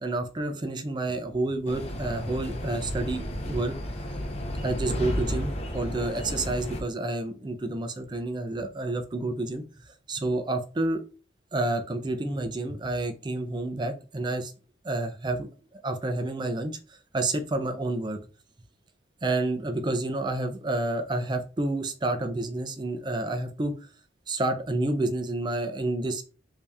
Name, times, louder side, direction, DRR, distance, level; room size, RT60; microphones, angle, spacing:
voice 1, 0.0-3.7 4.6-9.6 10.1-11.0 11.5-14.5 14.8-18.2 19.2-23.7 24.3-26.2, right 2 dB, 25° right, 7 dB, 0.4 m, -29 dB
sound 1, 1.7-6.8, equal, 30° left, 0.6 m, -33 dB
3.3 x 2.7 x 3.4 m, 0.35 s
head